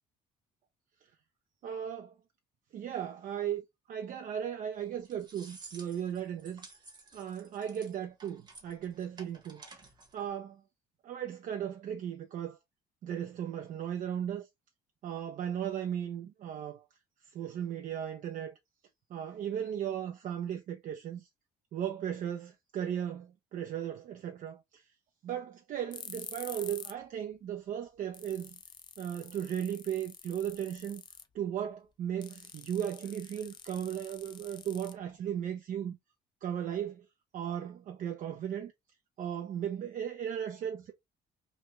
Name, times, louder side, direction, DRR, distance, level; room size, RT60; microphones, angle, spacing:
voice 1, 1.6-2.2 2.7-3.6 3.9-6.7 7.1-9.6 10.1-10.6 11.0-12.6 13.0-14.4 15.0-16.8 17.3-18.5 19.1-21.2 21.7-24.8 25.2-28.6 29.0-31.0 31.3-35.9 36.4-37.0 37.3-38.7 39.2-40.9, right 9 dB, 50° right, 0.5 m, -36 dB
sound 1, 4.8-10.3, right 3 dB, 25° right, 1.0 m, -53 dB
sound 2, 25.9-27.0 27.3-27.4 27.9-28.0 28.1-31.4 32.2-35.3, left 6 dB, 25° left, 0.4 m, -48 dB
3.1 x 2.2 x 2.9 m
cardioid pair, 110°, 17 cm